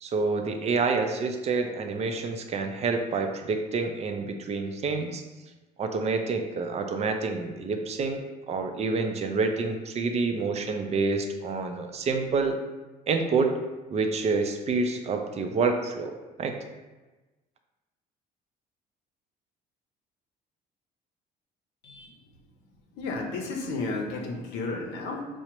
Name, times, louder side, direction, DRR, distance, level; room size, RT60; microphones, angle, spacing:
voice 1, 0.0-5.2 5.8-12.6 13.1-13.6 13.9-16.1 16.4-16.6, right 4 dB, 40° right, 5 dB, 0.4 m, -28 dB
voice 2, 21.8-22.2 23.0-25.3, left 3 dB, 90° left, 1 dB, 0.6 m, -33 dB
4.7 x 2.1 x 2.9 m, 1.2 s
cardioid pair, 110°, 17 cm